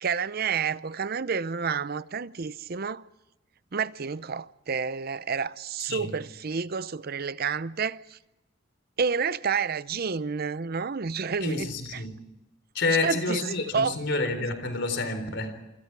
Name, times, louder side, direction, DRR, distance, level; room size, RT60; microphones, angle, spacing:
voice 1, 0.0-3.0 3.7-8.2 9.0-12.0 13.0-13.4 13.7-14.0, right 5 dB, 50° right, 0.7 m, -29 dB
voice 2, 11.4-12.1 12.7-15.5, left 3 dB, 60° left, 3.9 m, -28 dB
27.5 x 25.5 x 4.7 m
head